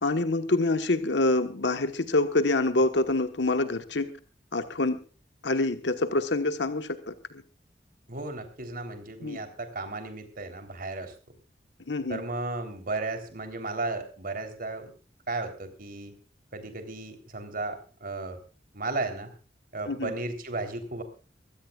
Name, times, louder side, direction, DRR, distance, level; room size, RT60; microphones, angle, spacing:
voice 1, 0.0-4.1 4.5-5.0 5.4-7.1 9.2-9.4 11.9-12.2 19.9-20.1, left 2 dB, 85° left, 9 dB, 1.3 m, -26 dB
voice 2, 8.1-11.1 12.1-14.9 15.3-16.1 16.5-18.4 18.7-19.3 19.7-21.0, right 2 dB, 55° right, 7 dB, 3.5 m, -34 dB
24.0 x 16.5 x 2.4 m, 0.35 s
head